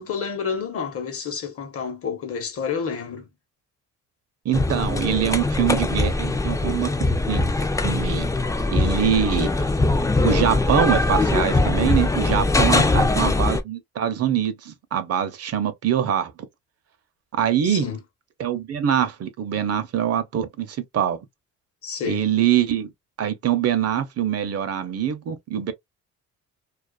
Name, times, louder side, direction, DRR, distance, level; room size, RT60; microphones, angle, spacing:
voice 1, 0.0-3.3 12.7-13.1 17.6-18.0 21.8-22.2, left 6 dB, 50° left, 0.9 m, -30 dB
sound 1, 4.5-13.6, left 2 dB, 10° left, 0.3 m, -21 dB
voice 2, 4.5-7.5 7.8-8.3 8.7-9.6 10.2-16.3 17.4-17.9 18.4-21.2 22.0-22.9 23.2-25.7, right 9 dB, 55° right, 0.6 m, -24 dB
2.4 x 2.3 x 2.2 m
cardioid pair, 90°, 30 cm